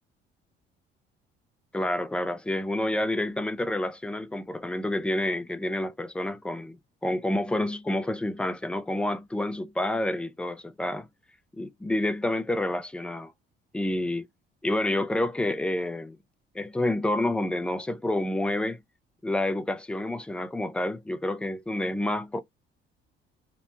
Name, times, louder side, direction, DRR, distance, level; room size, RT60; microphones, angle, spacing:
voice 1, 1.7-11.1 11.6-13.3 13.7-14.3 14.6-16.2 16.5-18.8 19.2-22.4, left 1 dB, 5° left, 0.4 m, -29 dB
2.8 x 2.0 x 2.3 m
figure-of-eight pair, 50°, 30 cm